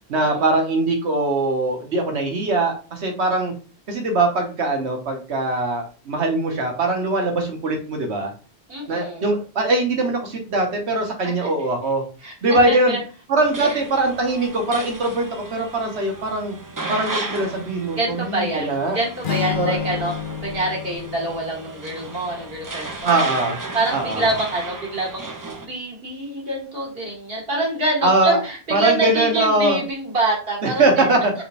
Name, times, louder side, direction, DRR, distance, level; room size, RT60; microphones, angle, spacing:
voice 1, 0.1-3.5 3.9-8.3 8.9-12.0 12.4-12.9 13.3-16.6 16.9-19.0 19.5-19.8 23.0-23.6 23.9-24.3 28.0-28.4 28.7-29.8 30.6-31.3, right 2 dB, 80° right, 3 dB, 1.4 m, -21 dB
voice 2, 8.7-9.3 11.2-11.7 12.2-13.0 13.6-13.8 18.0-20.1 20.4-23.2 23.7-31.1, right 2 dB, 60° right, -2 dB, 2.0 m, -26 dB
sound 1, 13.4-25.7, right 2 dB, 25° right, 0.5 m, -34 dB
sound 2, 19.2-23.4, left 7 dB, 55° left, 0.8 m, -31 dB
5.7 x 3.3 x 2.5 m, 0.36 s
omnidirectional pair, 1.1 m